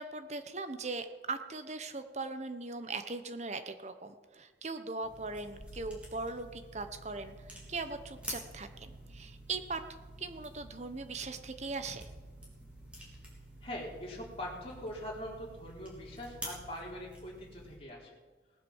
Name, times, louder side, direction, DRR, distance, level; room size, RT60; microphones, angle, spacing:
voice 1, 0.0-12.0, right 3 dB, 40° right, 9 dB, 1.1 m, -40 dB
sound 1, 5.0-17.8, right 1 dB, 5° right, 3.6 m, -49 dB
voice 2, 13.6-18.1, left 1 dB, 30° left, -3 dB, 3.8 m, -42 dB
19.0 x 7.9 x 7.3 m, 1.3 s
head